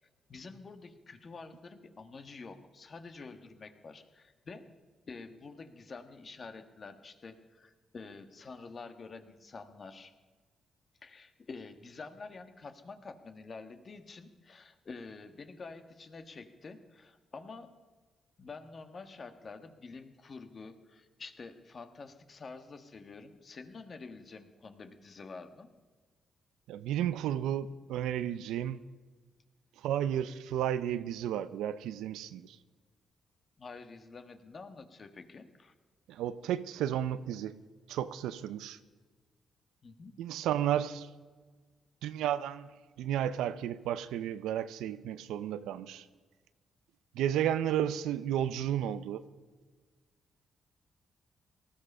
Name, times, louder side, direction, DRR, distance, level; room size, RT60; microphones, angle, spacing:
voice 1, 0.3-4.7 5.1-10.1 11.0-17.8 18.4-25.7 33.6-35.7 39.8-40.2, left 4 dB, 45° left, 1.5 m, -48 dB
voice 2, 26.7-28.8 29.8-32.6 36.1-37.6 37.9-38.8 40.2-41.1 42.0-42.7 43.0-46.1 47.1-49.2, right 10 dB, 90° right, 0.6 m, -32 dB
18.5 x 13.5 x 5.5 m
supercardioid pair, 65°, 0 cm